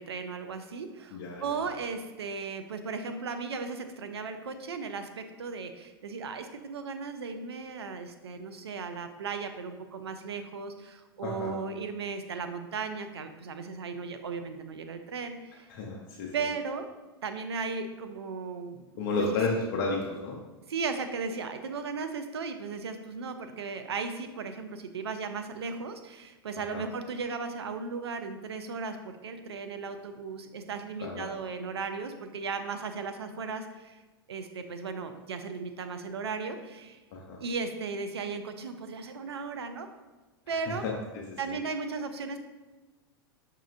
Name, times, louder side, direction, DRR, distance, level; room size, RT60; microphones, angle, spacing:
voice 1, 0.0-15.7 16.3-16.9 17.2-18.8 20.7-34.0 34.3-37.0 37.4-39.9 40.5-40.8 41.4-42.4, right 4 dB, 85° right, 8 dB, 0.4 m, -36 dB
voice 2, 1.1-1.6 11.2-11.5 15.7-16.3 19.0-20.4 26.7-26.8 31.0-31.3 37.1-37.4 40.5-41.5, left 3 dB, 60° left, -2 dB, 0.7 m, -32 dB
5.8 x 2.8 x 2.5 m, 1.2 s
hypercardioid pair, 95°, 13 cm